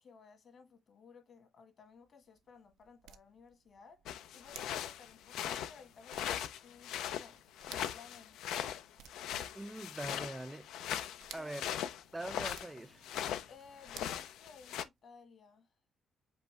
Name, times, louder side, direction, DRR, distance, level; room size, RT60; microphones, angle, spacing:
voice 1, 0.0-4.0 4.3-8.8 11.4-11.8 13.5-15.7, left 5 dB, 55° left, 1.6 m, -58 dB
sound 1, 1.8-15.0, right 10 dB, 90° right, 0.5 m, -59 dB
sound 2, 4.1-13.5 13.8-14.8, left 10 dB, 85° left, 0.5 m, -40 dB
voice 2, 9.5-10.7 11.3-11.7 12.1-13.1, right 1 dB, 15° right, 0.4 m, -43 dB
5.4 x 2.0 x 4.6 m
cardioid pair, 90°, 0 cm